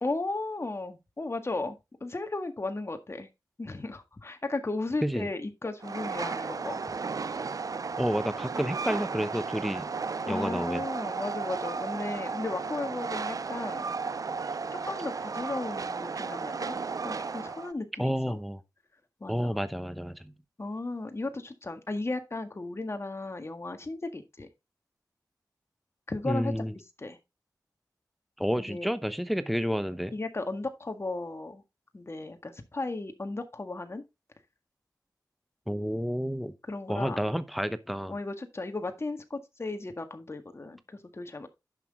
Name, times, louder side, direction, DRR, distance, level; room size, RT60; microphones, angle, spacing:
voice 1, 0.0-3.3 3.6-6.8 10.2-13.9 14.7-16.8 17.0-18.4 19.2-19.6 20.6-24.5 26.1-26.6 27.0-27.2 28.6-28.9 30.1-31.6 31.9-34.0 36.7-37.2 38.1-41.5, left 2 dB, 35° left, 1.7 m, -35 dB
Train, 5.8-17.7, right 4 dB, 50° right, 0.5 m, -34 dB
voice 2, 8.0-9.9 10.3-10.8 18.0-18.6 19.3-20.3 26.2-26.7 28.4-30.1 35.7-36.5 36.9-38.1, equal, ahead, 0.8 m, -30 dB
10.5 x 6.0 x 3.6 m
cardioid pair, 60°, 7 cm